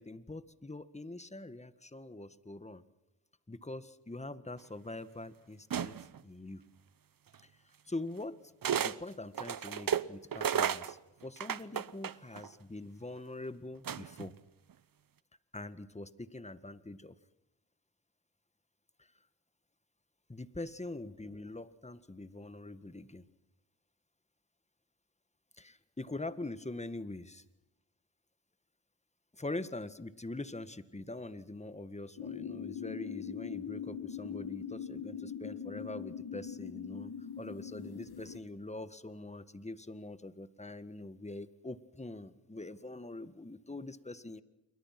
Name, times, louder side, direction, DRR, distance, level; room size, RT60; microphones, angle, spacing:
voice 1, 0.0-2.8 3.5-6.0 6.2-6.6 7.4-7.5 7.9-8.4 8.7-14.3 15.5-17.1 19.0-19.1 20.3-23.2 25.6-27.4 29.3-37.1 37.4-44.4, left 2 dB, 15° left, 13 dB, 1.7 m, -44 dB
sound 1, 5.7-6.2 7.3-7.4 8.6-9.0 9.3-12.5 13.8-14.3, right 8 dB, 60° right, 0.9 m, -33 dB
sound 2, 32.2-38.4, left 7 dB, 70° left, 1.6 m, -42 dB
28.0 x 23.5 x 6.0 m, 0.92 s
cardioid pair, 50°, 39 cm